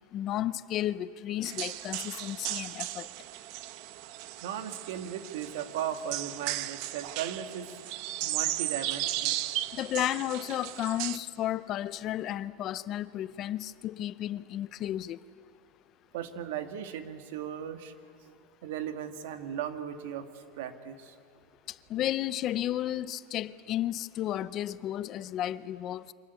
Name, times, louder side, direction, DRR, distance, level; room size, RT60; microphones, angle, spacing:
voice 1, 0.1-3.1 9.7-15.2 21.7-26.1, left 12 dB, 35° left, 0.6 m, -33 dB
sound 1, 1.4-11.2, right 15 dB, 55° right, 0.9 m, -36 dB
voice 2, 4.4-7.7 8.2-9.4 16.1-17.9 18.6-21.1, right 9 dB, 75° right, 2.1 m, -37 dB
28.5 x 25.0 x 8.3 m
supercardioid pair, 165°, 0 cm